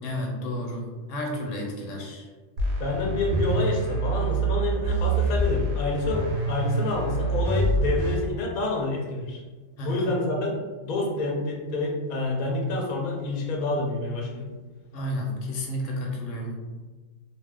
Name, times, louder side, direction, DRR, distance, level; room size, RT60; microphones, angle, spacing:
voice 1, 0.0-2.2 9.8-10.1 14.9-16.6, left 1 dB, 80° left, 0 dB, 1.0 m, -31 dB
sound 1, 2.6-8.1, right 2 dB, 80° right, 1.1 m, -26 dB
voice 2, 2.8-9.4 9.8-10.6 10.8-14.5, left 2 dB, 55° left, -1 dB, 0.6 m, -28 dB
2.7 x 2.0 x 3.4 m, 1.3 s
omnidirectional pair, 1.3 m